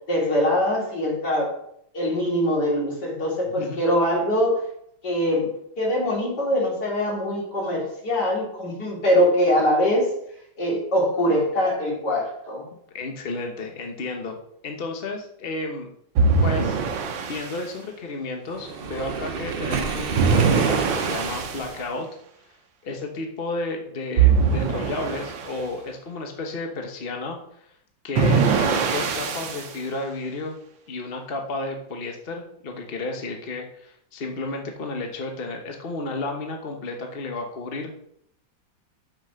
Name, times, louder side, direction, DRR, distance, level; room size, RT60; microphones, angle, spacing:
voice 1, 0.1-1.5 1.9-4.6 5.0-10.1 10.6-12.7, equal, 60° left, -4 dB, 3.9 m, -23 dB
voice 2, 12.9-15.9 16.4-16.8 17.2-22.1 22.8-27.7 28.0-30.6 30.9-37.9, left 2 dB, 35° left, 2 dB, 1.0 m, -32 dB
sound 1, 16.2-17.6 20.1-21.7 24.2-25.5 28.1-29.7, right 5 dB, 80° right, 1.7 m, -22 dB
Waves surf, 18.5-21.8, right 5 dB, 55° right, 0.6 m, -28 dB
6.7 x 6.3 x 6.3 m, 0.71 s
omnidirectional pair, 2.0 m